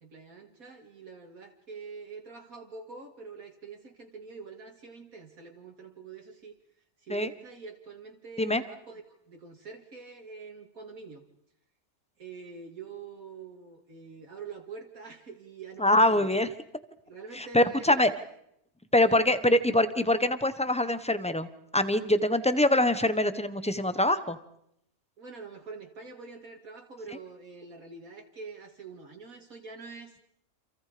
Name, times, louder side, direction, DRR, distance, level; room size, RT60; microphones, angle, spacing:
voice 1, 0.0-6.6 7.0-11.2 12.2-16.4 17.1-18.1 19.0-19.2 25.2-30.2, right 5 dB, 70° right, 1 dB, 2.6 m, -45 dB
voice 2, 15.8-16.5 17.3-18.1 18.9-24.4, left 1 dB, 5° left, 12 dB, 1.1 m, -24 dB
29.0 x 27.5 x 5.2 m, 0.77 s
omnidirectional pair, 1.6 m